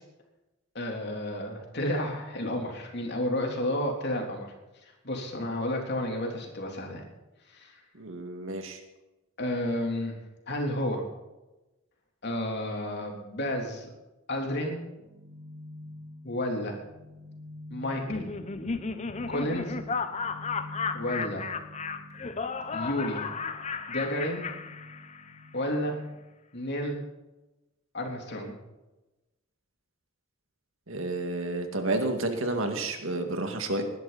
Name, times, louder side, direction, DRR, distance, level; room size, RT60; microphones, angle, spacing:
voice 1, 0.7-4.5 4.8-7.0 7.5-7.8 9.4-10.2 10.5-11.0 12.2-13.9 14.3-14.8 16.2-16.8 17.7-18.3 19.3-19.7 20.9-21.5 22.7-23.2 23.9-24.4 25.5-26.0 26.5-27.0 27.9-28.5, left 1 dB, 55° left, 1 dB, 3.4 m, -31 dB
voice 2, 8.0-8.8 30.9-33.8, right 2 dB, 70° right, 5 dB, 2.1 m, -30 dB
metallic drone, 15.0-26.2, left 1 dB, 10° left, 3.4 m, -47 dB
Laughter, 17.9-25.4, left 4 dB, 35° left, 0.9 m, -34 dB
20.0 x 11.0 x 4.2 m, 1.0 s
head